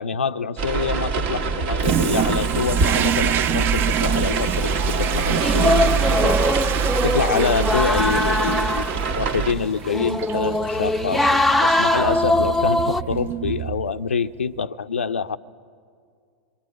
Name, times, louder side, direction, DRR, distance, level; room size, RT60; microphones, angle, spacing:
voice 1, 0.0-5.8 6.2-15.4, left 5 dB, 80° left, 11 dB, 0.5 m, -26 dB
sound 1, 0.6-9.5, right 5 dB, 55° right, 1.8 m, -24 dB
Toilet flush, 1.8-14.1, right 10 dB, 35° right, 0.6 m, -28 dB
sound 2, 5.4-13.0, left 1 dB, ahead, 0.7 m, -22 dB
26.0 x 22.0 x 7.7 m, 2.2 s
figure-of-eight pair, 95°, 6 cm